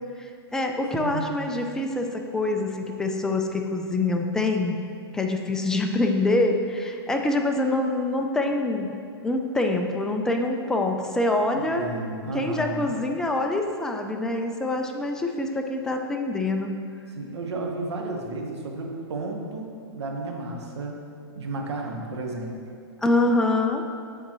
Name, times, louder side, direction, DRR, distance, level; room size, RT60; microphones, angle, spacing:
voice 1, 0.2-4.8 5.1-8.9 9.2-11.9 12.3-16.8 23.0-23.8, left 2 dB, 5° left, 3 dB, 0.3 m, -25 dB
voice 2, 0.9-1.5 11.5-13.0 17.2-20.9 21.3-22.5, right 2 dB, 85° right, 1 dB, 1.0 m, -33 dB
8.8 x 3.8 x 3.0 m, 2.4 s
hypercardioid pair, 130°, 14 cm